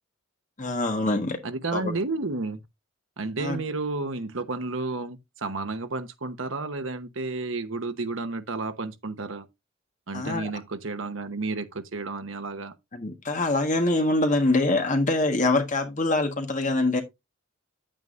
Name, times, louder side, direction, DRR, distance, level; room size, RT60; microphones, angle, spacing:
voice 1, 0.6-1.4 1.7-1.9 3.4-3.6 10.1-10.5 12.9-17.0, left 2 dB, 35° left, 1.4 m, -24 dB
voice 2, 1.4-2.6 3.2-9.5 10.1-12.7, right 3 dB, 70° right, 1.0 m, -31 dB
9.2 x 8.9 x 2.5 m
head